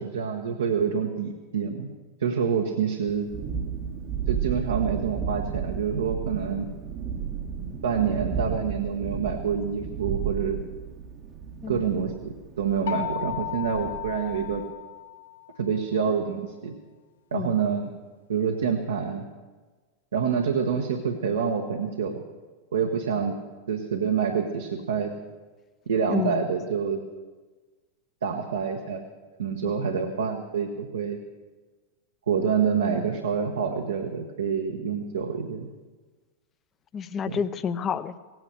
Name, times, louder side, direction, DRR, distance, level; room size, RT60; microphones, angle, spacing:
voice 1, 0.0-1.9 2.2-3.3 4.3-6.7 7.8-10.6 11.7-14.6 15.6-16.7 17.3-17.9 18.3-19.3 20.1-22.2 22.7-23.4 23.7-25.1 25.9-27.0 28.2-29.0 29.4-31.2 32.3-35.7 37.3-37.4, right 6 dB, 75° right, 3 dB, 1.2 m, -27 dB
Thunderstorm, 3.1-14.7, right 7 dB, 35° right, 1.0 m, -33 dB
sound 1, 12.9-15.6, left 11 dB, 70° left, 0.7 m, -34 dB
voice 2, 26.1-26.4 29.6-29.7 36.9-38.1, left 7 dB, 30° left, 13 dB, 0.7 m, -29 dB
17.0 x 9.2 x 8.1 m, 1.3 s
figure-of-eight pair, 95°, 0 cm